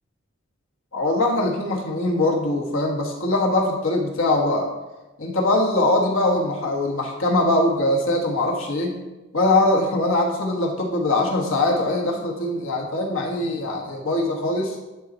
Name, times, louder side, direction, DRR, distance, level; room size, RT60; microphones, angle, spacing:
voice 1, 0.9-4.7 5.2-9.0 9.3-14.8, left 2 dB, 90° left, 0 dB, 1.5 m, -22 dB
10.5 x 4.1 x 4.3 m, 1.1 s
head